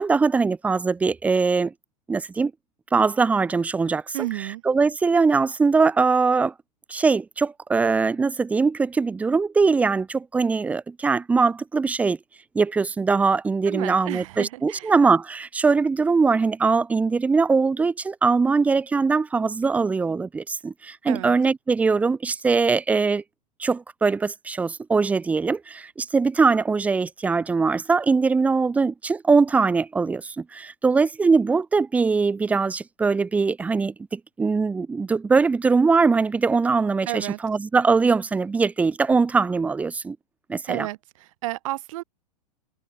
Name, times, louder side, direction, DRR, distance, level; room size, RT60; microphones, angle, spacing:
voice 1, 0.0-1.7 2.1-2.5 2.9-6.5 6.9-12.2 12.5-23.2 23.6-40.2 40.5-40.9, right 4 dB, 5° right, 0.4 m, -21 dB
voice 2, 4.1-4.6 13.7-14.9 21.1-21.4 37.1-37.4 40.7-42.0, right 18 dB, 50° right, 6.0 m, -32 dB
figure-of-eight pair, 95°, 21 cm